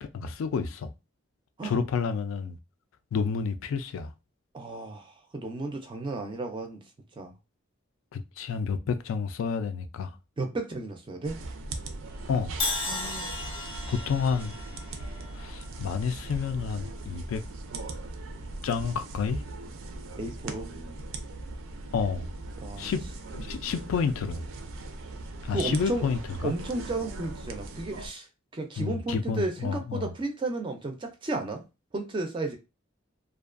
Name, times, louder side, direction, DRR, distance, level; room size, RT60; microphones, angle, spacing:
voice 1, 0.0-0.9 1.6-2.6 3.1-4.1 8.1-10.1 12.3-12.6 13.9-14.5 15.3-17.4 18.6-19.4 21.9-22.3 22.8-23.0 23.3-24.5 25.4-26.5 28.8-30.1, left 6 dB, 80° left, 0.3 m, -30 dB
voice 2, 4.5-6.8 7.2-7.3 10.4-11.4 12.9-13.4 13.8-13.9 20.1-20.7 22.6-22.9 25.5-26.0 26.4-28.3 28.5-31.6 31.9-32.6, right 2 dB, 25° right, 0.3 m, -33 dB
sound 1, 11.2-28.1, right 2 dB, 90° right, 0.4 m, -39 dB
Crash cymbal, 12.6-16.6, left 3 dB, 30° left, 0.5 m, -35 dB
2.4 x 2.2 x 2.4 m
head